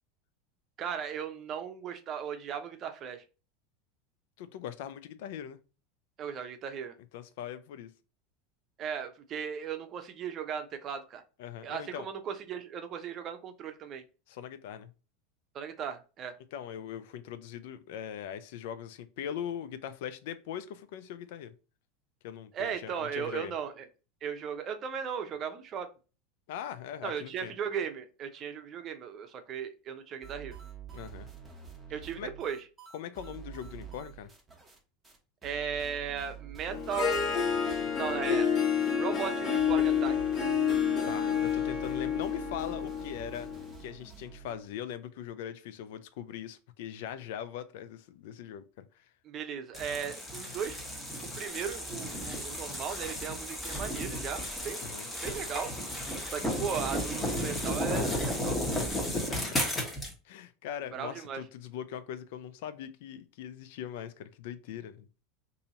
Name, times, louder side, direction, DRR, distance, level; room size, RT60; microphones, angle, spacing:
voice 1, 0.8-3.2 6.2-7.0 8.8-11.2 11.6-14.0 15.5-16.3 22.5-23.9 24.2-25.9 27.0-30.6 31.9-32.6 35.4-37.5 38.0-38.5 38.9-40.2 49.2-50.8 51.3-54.9 55.2-55.7 56.3-58.6 60.9-61.4, right 7 dB, 40° right, 0.7 m, -37 dB
voice 2, 4.4-5.6 7.1-7.9 11.4-12.1 14.3-14.9 16.5-21.5 22.2-23.5 26.5-27.5 30.9-31.3 32.2-32.3 32.9-34.3 41.0-43.5 43.8-49.1 54.8-55.1 58.9-59.6 60.2-65.1, left 9 dB, 70° left, 0.4 m, -41 dB
sound 1, 30.2-34.8 35.0-35.2 35.4-44.7, right 8 dB, 10° right, 1.2 m, -48 dB
Harp, 36.7-43.8, left 7 dB, 35° left, 0.9 m, -29 dB
sound 2, 49.7-60.1, equal, 15° left, 1.3 m, -34 dB
2.7 x 2.7 x 4.0 m
hypercardioid pair, 105°, 0 cm